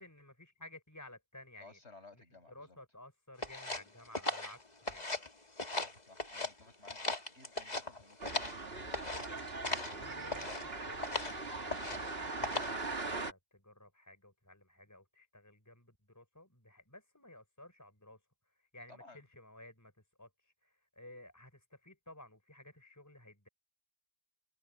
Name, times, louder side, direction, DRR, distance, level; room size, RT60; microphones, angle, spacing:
voice 1, 0.0-1.8 2.5-5.1 9.3-9.5 10.0-10.5 10.8-18.2 18.6-19.9 20.2-23.5, left 1 dB, 10° left, 5.7 m, -55 dB
voice 2, 1.6-2.8 5.8-9.1 18.9-19.2, left 3 dB, 45° left, 6.6 m, -58 dB
sound 1, 3.4-5.3 5.6-6.5 6.8-8.6 8.9-9.3 9.6-10.0 10.3-10.6 11.0-11.4 11.7-12.1 12.4-12.8, left 2 dB, 25° left, 2.3 m, -38 dB
sound 2, 8.2-13.3, right 3 dB, 40° right, 2.5 m, -41 dB
omnidirectional pair, 1.6 m